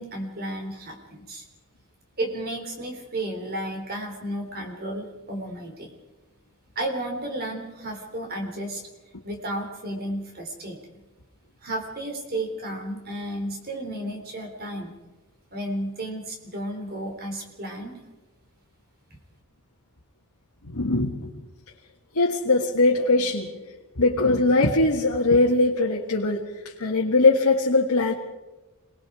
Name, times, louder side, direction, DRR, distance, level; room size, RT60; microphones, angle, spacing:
voice 1, 0.0-1.5 2.2-5.9 6.8-8.8 9.2-10.8 11.6-14.9 15.5-18.0, right 1 dB, 45° right, 3 dB, 3.6 m, -33 dB
voice 2, 20.6-21.3 22.1-23.5 24.0-26.5 26.8-28.1, left 2 dB, 90° left, -2 dB, 1.8 m, -21 dB
27.0 x 20.0 x 4.9 m, 1.1 s
head